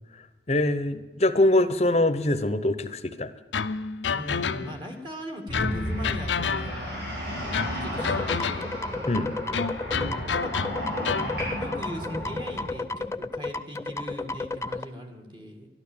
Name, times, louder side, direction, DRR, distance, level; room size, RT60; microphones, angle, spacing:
voice 1, 0.5-3.3 9.1-9.3, left 1 dB, 35° left, 11 dB, 0.9 m, -23 dB
sound 1, 3.5-4.9 5.5-7.0 7.5-8.9 9.5-11.4, left 5 dB, 80° left, 0.6 m, -30 dB
voice 2, 4.1-8.7 9.9-10.8 11.5-15.7, equal, 25° right, 3 dB, 2.0 m, -40 dB
sound 2, 5.5-12.7, equal, 70° right, 6.6 m, -33 dB
sound 3, 8.0-14.8, left 3 dB, 15° left, 0.3 m, -33 dB
12.5 x 12.0 x 7.2 m, 1.2 s
head